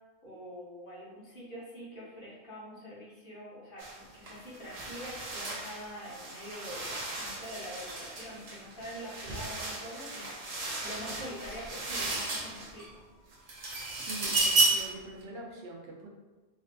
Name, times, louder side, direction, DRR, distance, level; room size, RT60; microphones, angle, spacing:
voice 1, 0.2-13.0, equal, 50° left, -7 dB, 1.1 m, -45 dB
sound 1, 3.8-4.0 4.3-12.9 13.3-15.0, right 2 dB, 45° right, 0.5 m, -33 dB
voice 2, 13.9-16.1, right 1 dB, 65° right, -1 dB, 0.8 m, -44 dB
3.4 x 2.4 x 2.5 m, 1.2 s
omnidirectional pair, 1.2 m